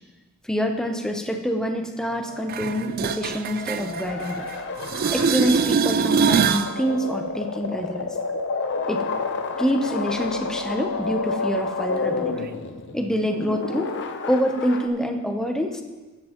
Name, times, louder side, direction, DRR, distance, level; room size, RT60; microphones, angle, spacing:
voice 1, 0.4-4.5 5.1-8.1 8.9-9.1 9.6-12.5 12.9-13.9 14.2-15.8, equal, 5° left, 4 dB, 0.7 m, -26 dB
sound 1, 2.0-14.9, left 4 dB, 55° left, 0.7 m, -30 dB
sound 2, 2.5-4.6 4.8-6.7 12.5-12.6, right 6 dB, 45° right, 0.4 m, -23 dB
16.0 x 7.8 x 3.0 m, 1.2 s
head